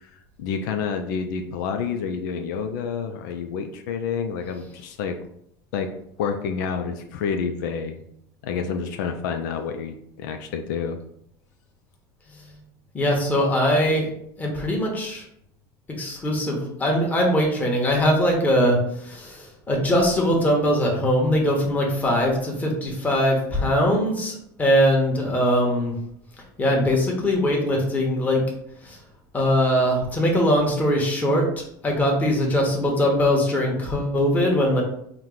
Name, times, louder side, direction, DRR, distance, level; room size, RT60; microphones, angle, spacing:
voice 1, 0.0-5.2 5.7-5.9 6.2-8.0 8.4-11.0, left 6 dB, 80° left, 5 dB, 0.5 m, -29 dB
voice 2, 12.9-14.1 14.4-15.2 16.0-26.0 26.6-28.4 28.8-29.0 29.3-31.5 31.8-34.8, equal, 15° left, -1 dB, 1.1 m, -21 dB
4.5 x 2.2 x 3.8 m, 0.72 s
supercardioid pair, 125°, 10 cm